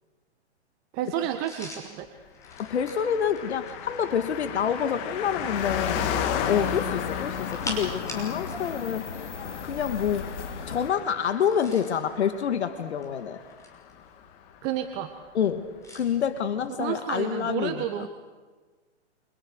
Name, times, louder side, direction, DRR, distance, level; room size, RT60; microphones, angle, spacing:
voice 1, 0.9-2.1 14.6-15.1 16.8-18.1, right 11 dB, 25° right, 6 dB, 1.5 m, -30 dB
sound 1, 1.4-4.1 6.5-8.7 8.9-9.1 11.3-12.0 12.8-13.9 15.8-16.1, left 1 dB, 10° left, 5.7 m, -41 dB
Car passing by, 2.4-14.3 14.5-14.6, left 8 dB, 30° left, 2.2 m, -34 dB
voice 2, 2.6-6.1 6.4-10.3 10.7-13.4 15.3-15.7 15.9-18.1, left 8 dB, 70° left, 10 dB, 2.1 m, -27 dB
sound 2, 5.5-10.9, left 5 dB, 85° left, 3.0 m, -38 dB
29.0 x 27.5 x 6.5 m, 1.4 s
hypercardioid pair, 145°, 35 cm